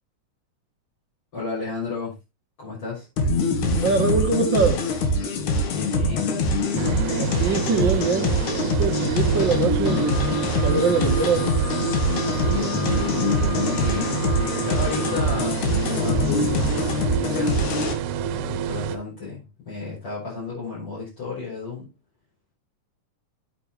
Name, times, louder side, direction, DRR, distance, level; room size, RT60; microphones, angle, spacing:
voice 1, 1.3-2.1 2.6-3.1 5.7-6.4 12.3-14.3 14.6-16.9 17.1-17.8 18.2-21.9, left 4 dB, 40° left, 7.2 m, -33 dB
sound 1, 3.2-17.9, left 2 dB, 70° left, 2.9 m, -24 dB
voice 2, 3.8-5.1 7.2-10.1 10.6-11.5, right 5 dB, 55° right, 1.3 m, -23 dB
sound 2, 6.8-19.0, right 9 dB, 75° right, 2.2 m, -29 dB
Alarm, 9.9-15.4, left 10 dB, 90° left, 3.1 m, -38 dB
10.0 x 9.0 x 3.1 m
omnidirectional pair, 3.6 m